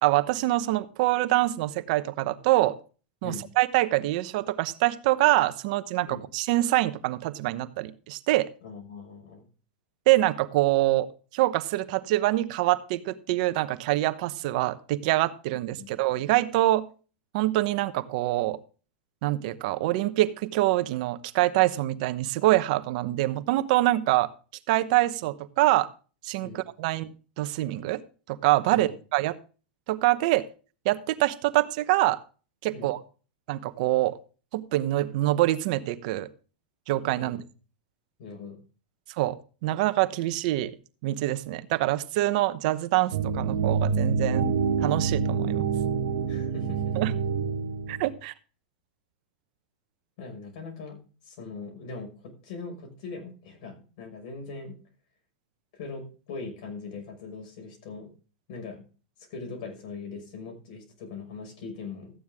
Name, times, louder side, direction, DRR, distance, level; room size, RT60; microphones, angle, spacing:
voice 1, 0.0-2.8 3.2-8.5 10.1-11.1 11.3-16.9 17.3-18.6 19.2-24.3 24.7-25.9 26.2-27.1 27.4-28.0 28.3-29.4 29.9-30.4 30.8-32.2 32.6-33.0 33.5-34.2 34.5-36.3 36.9-37.4 39.2-39.4 39.6-40.7 41.0-44.4 44.8-45.7 46.9-47.1 47.9-48.3, right 17 dB, 55° right, 12 dB, 0.9 m, -25 dB
voice 2, 8.6-9.5 15.8-15.9 26.4-26.6 28.7-29.0 32.7-32.9 37.2-37.4 38.2-38.6 46.3-47.2 50.2-54.8 55.7-58.1 58.5-58.8 59.2-62.1, left 4 dB, 55° left, 3 dB, 5.8 m, -40 dB
sound 1, 43.1-48.1, right 5 dB, 70° right, 1.7 m, -27 dB
13.5 x 9.4 x 3.6 m, 0.36 s
supercardioid pair, 140°, 5 cm